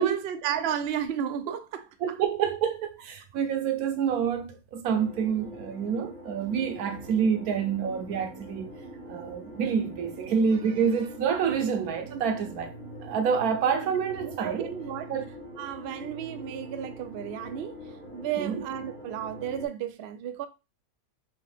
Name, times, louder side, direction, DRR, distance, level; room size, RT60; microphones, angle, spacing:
voice 1, 0.0-2.2 14.2-15.1 15.6-20.5, right 9 dB, 65° right, 0.6 m, -33 dB
voice 2, 2.0-8.7 9.1-12.7 13.0-14.7 15.1-15.3 18.4-18.7, right 7 dB, 80° right, 1.2 m, -27 dB
sound 1, 4.9-19.7, equal, 60° left, 1.8 m, -43 dB
4.5 x 2.7 x 3.4 m
omnidirectional pair, 1.5 m